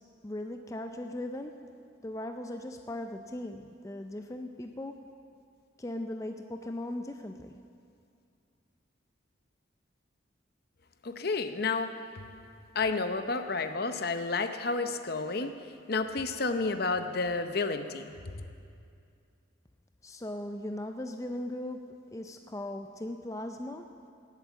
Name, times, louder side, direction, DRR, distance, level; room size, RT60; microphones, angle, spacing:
voice 1, 0.2-1.5 2.0-5.0 5.8-7.5 20.0-21.8 22.1-23.9, left 1 dB, 15° left, 5 dB, 0.4 m, -38 dB
voice 2, 11.0-12.3 12.7-15.5 15.9-18.1, left 3 dB, 50° left, 8 dB, 0.7 m, -31 dB
19.0 x 8.2 x 7.2 m, 2.4 s
head